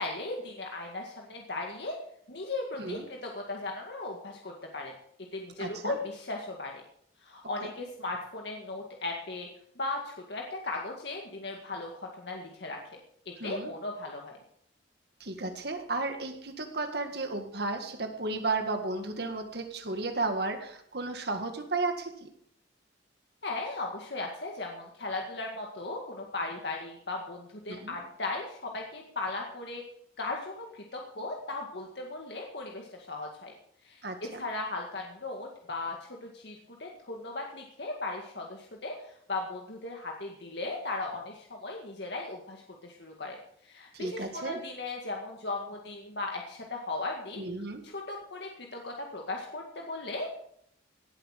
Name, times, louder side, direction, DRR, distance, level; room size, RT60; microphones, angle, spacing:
voice 1, 0.0-2.0 2.3-4.9 5.3-6.7 7.2-9.5 9.8-13.0 13.3-14.4 23.4-29.8 30.2-33.5 33.8-43.4 43.6-47.4 47.8-50.4, left 2 dB, 65° left, 1 dB, 2.0 m, -37 dB
voice 2, 5.6-6.0 7.6-7.7 13.4-13.7 15.2-22.3 27.7-28.0 34.0-34.4 43.9-44.6 47.4-47.8, right 3 dB, 55° right, 6 dB, 1.9 m, -34 dB
17.5 x 8.0 x 6.6 m, 0.68 s
head